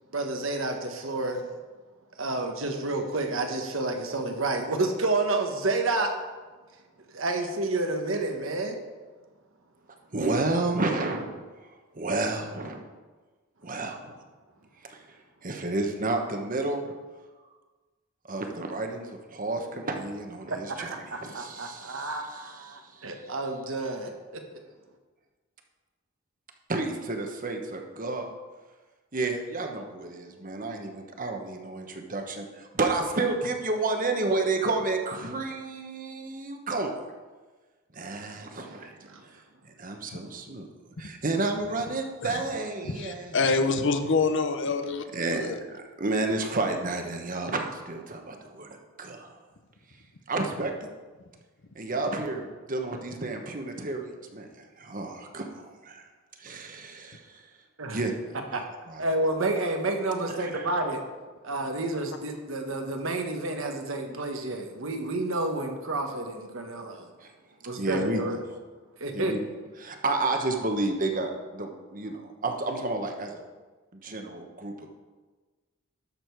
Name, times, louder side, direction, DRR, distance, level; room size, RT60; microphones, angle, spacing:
voice 1, 0.1-1.5 2.2-6.1 7.1-8.8 20.5-24.4 38.6-39.2 57.8-58.0 58.5-58.6 59.0-61.0 61.4-67.1 67.6-68.4 69.0-69.3, right 2 dB, 65° right, 4 dB, 1.3 m, -30 dB
voice 2, 10.1-11.3 11.9-12.8 13.6-14.2 14.8-15.0 15.4-17.0 18.3-23.1 26.7-28.3 29.1-36.9 37.9-39.1 39.8-40.7 41.0-43.7 45.1-48.7 49.0-49.3 50.3-50.9 51.7-56.0 56.4-57.4 57.9-58.1 58.9-59.1 60.4-60.7 67.2-67.3 67.8-68.2 69.1-69.4 69.8-73.4 73.9-74.9, right 2 dB, 40° right, 4 dB, 1.2 m, -31 dB
voice 3, 42.8-45.6, left 4 dB, 60° left, 8 dB, 0.8 m, -26 dB
12.5 x 6.7 x 4.7 m, 1.3 s
head